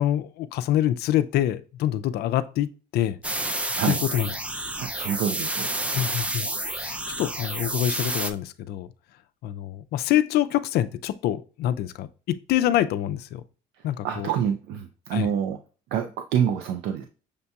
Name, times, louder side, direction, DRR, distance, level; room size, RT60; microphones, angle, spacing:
voice 1, 0.0-3.2 3.9-4.3 5.9-8.9 9.4-13.4 13.8-14.3 15.1-15.3, left 12 dB, 70° left, 0.4 m, -26 dB
sound 1, 3.2-8.3, right 1 dB, 5° right, 0.3 m, -29 dB
voice 2, 4.7-5.7 14.0-15.6 15.9-17.0, right 8 dB, 85° right, 0.4 m, -27 dB
6.5 x 2.7 x 2.3 m
cardioid pair, 110°, 17 cm